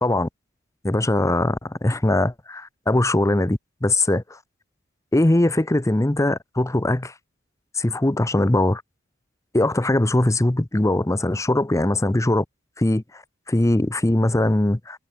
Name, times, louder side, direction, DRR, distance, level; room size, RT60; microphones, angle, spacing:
voice 1, 0.8-4.4 5.1-7.1 7.7-8.8 9.5-12.4 12.8-13.2 13.5-15.1, left 1 dB, 15° left, 0.7 m, -21 dB
head